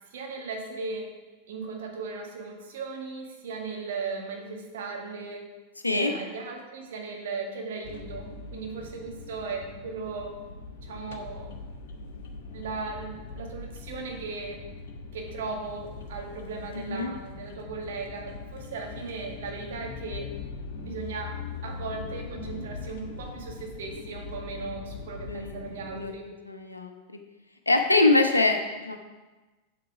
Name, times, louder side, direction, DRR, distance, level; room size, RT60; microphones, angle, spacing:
voice 1, 0.1-1.2 1.5-5.5 5.9-10.4 10.8-11.5 12.5-14.6 15.1-20.3 20.8-26.3, right 4 dB, 60° right, 1 dB, 1.7 m, -37 dB
sound 1, 7.8-26.0, left 4 dB, 55° left, 1.2 m, -41 dB
voice 2, 16.7-17.1 25.3-25.6 25.9-26.1 26.5-27.2 27.7-29.0, left 2 dB, 80° left, 4 dB, 0.8 m, -24 dB
7.9 x 7.7 x 4.8 m, 1.2 s
figure-of-eight pair, 90°, 0 cm